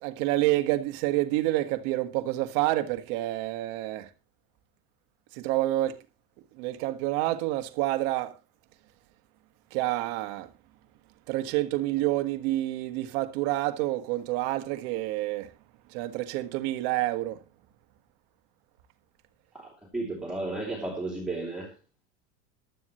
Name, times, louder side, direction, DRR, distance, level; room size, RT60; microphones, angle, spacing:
voice 1, 0.0-4.1 5.3-6.0 6.6-8.3 9.7-10.5 11.3-15.5 15.9-17.4, right 16 dB, 50° right, 1.7 m, -28 dB
voice 2, 19.5-21.7, right 2 dB, ahead, 2.8 m, -33 dB
15.5 x 12.0 x 3.1 m
supercardioid pair, 170°, 37 cm